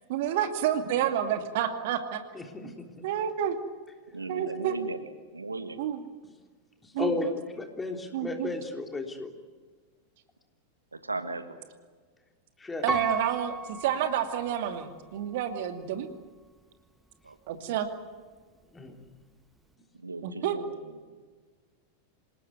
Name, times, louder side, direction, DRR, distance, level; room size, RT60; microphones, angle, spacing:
voice 1, 0.1-2.2 2.6-2.7 3.0-3.6 4.3-4.7 5.8-6.0 6.9-7.3 8.1-8.5 12.8-16.1 17.5-17.9 20.2-20.6, right 10 dB, 50° right, 7 dB, 2.5 m, -29 dB
voice 2, 2.3-3.0 6.8-9.3 12.6-12.8 18.7-18.9, left 3 dB, 10° left, 4 dB, 3.5 m, -34 dB
voice 3, 4.1-5.0 5.3-5.9 10.9-11.6 17.2-17.6 20.0-20.7, right 3 dB, 80° right, 10 dB, 1.7 m, -37 dB
Piano, 12.9-14.8 15.4-15.5, right 3 dB, 5° right, 0.8 m, -35 dB
27.5 x 19.0 x 9.5 m, 1.5 s
figure-of-eight pair, 90°, 0 cm